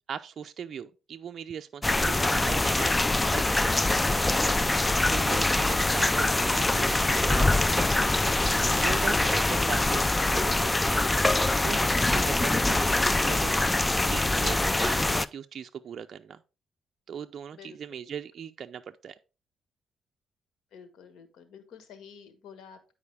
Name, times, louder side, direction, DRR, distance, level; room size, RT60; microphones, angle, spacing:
voice 1, 0.1-3.0 3.3-3.9 4.4-4.6 5.0-7.5 7.7-11.1 11.6-11.8 12.1-13.5 14.1-16.4 17.1-19.2, right 8 dB, 55° right, 0.4 m, -39 dB
sound 1, 1.8-15.3, left 2 dB, 15° left, 0.4 m, -24 dB
voice 2, 20.7-22.9, left 7 dB, 80° left, 1.5 m, -51 dB
9.6 x 4.7 x 3.4 m
cardioid pair, 90°, 0 cm